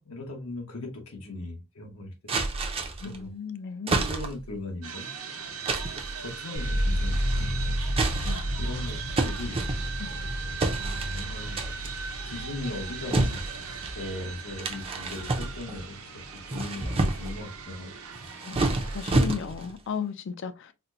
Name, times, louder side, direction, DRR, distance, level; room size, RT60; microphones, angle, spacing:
voice 1, 0.0-2.1 3.0-3.3 3.9-5.1 6.2-7.8 8.6-9.6 10.7-11.9 12.2-16.0 16.3-17.9, left 2 dB, 80° left, 0.9 m, -38 dB
sound 1, 2.3-3.2 3.9-4.5 5.7-6.2 7.1-7.5 7.9-8.6 9.2-10.1 10.6-11.2 11.6-12.0 13.1-14.0 14.6-15.8 16.3-17.4 18.1-19.7, right 2 dB, 25° right, 0.5 m, -29 dB
voice 2, 3.0-4.1 8.2-8.5 10.0-10.1 18.4-20.7, left 6 dB, 55° left, 0.4 m, -35 dB
sound 2, 4.8-19.0, right 6 dB, 75° right, 0.8 m, -39 dB
sound 3, 6.6-16.5 16.8-17.6, equal, 35° left, 0.7 m, -32 dB
4.1 x 2.1 x 2.6 m
head